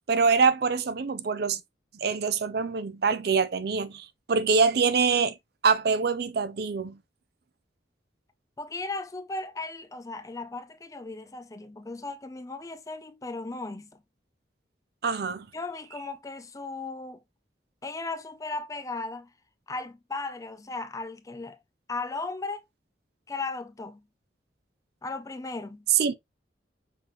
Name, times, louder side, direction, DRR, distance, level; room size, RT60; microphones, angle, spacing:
voice 1, 0.1-1.6 2.0-5.3 5.6-7.0 15.0-15.5 25.9-26.1, right 5 dB, 55° right, 0.4 m, -24 dB
voice 2, 8.6-14.0 15.5-17.2 17.8-19.3 19.7-21.6 21.9-22.6 23.3-24.0 25.0-25.9, left 3 dB, 15° left, 0.4 m, -36 dB
5.7 x 2.9 x 2.9 m
head